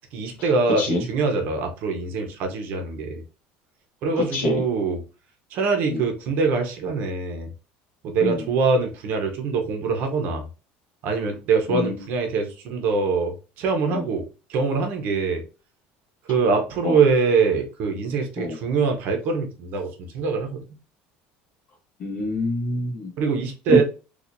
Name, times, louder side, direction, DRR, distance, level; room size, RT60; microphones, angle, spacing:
voice 1, 0.1-3.2 4.0-5.0 5.5-7.5 8.0-10.5 11.0-14.2 14.5-15.4 16.3-20.6 23.2-23.8, right 4 dB, 50° right, 4 dB, 0.7 m, -23 dB
voice 2, 22.0-23.1, left 2 dB, 40° left, 2 dB, 1.1 m, -26 dB
4.4 x 2.4 x 2.5 m, 0.33 s
cardioid pair, 165°, 4 cm